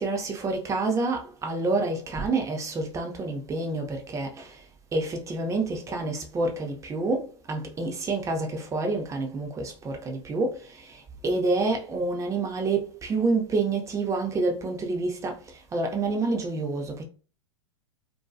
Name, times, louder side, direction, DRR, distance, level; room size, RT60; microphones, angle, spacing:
voice 1, 0.0-4.6 4.9-15.4 15.7-17.0, right 3 dB, 20° right, 0.6 m, -28 dB
2.6 x 2.2 x 2.3 m
hypercardioid pair, 100°, 16 cm